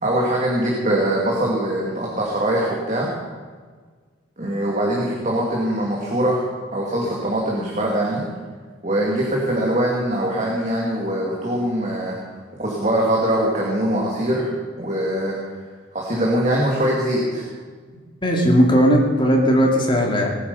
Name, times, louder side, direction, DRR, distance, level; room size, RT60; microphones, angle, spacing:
voice 1, 0.0-3.1 4.4-6.4 6.7-8.3 8.8-12.2 12.6-14.5 14.8-15.4 15.9-17.5, right 1 dB, 35° right, -3 dB, 2.6 m, -22 dB
voice 2, 18.2-20.3, equal, 25° left, 0 dB, 2.6 m, -17 dB
20.0 x 9.6 x 7.1 m, 1.5 s
head